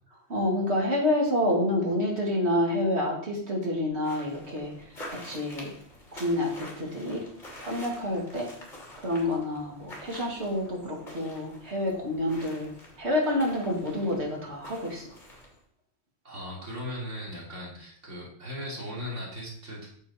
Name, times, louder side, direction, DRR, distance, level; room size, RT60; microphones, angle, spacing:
voice 1, 0.3-4.7 5.1-5.7 6.1-7.2 7.6-8.5 9.0-12.7 13.0-15.1, left 1 dB, 60° right, -1 dB, 2.4 m, -28 dB
sound 1, 4.0-15.6, left 1 dB, 40° left, 2.8 m, -47 dB
voice 2, 16.2-19.9, left 1 dB, 80° right, -4 dB, 3.4 m, -38 dB
8.8 x 7.2 x 4.3 m, 0.63 s
omnidirectional pair, 1.2 m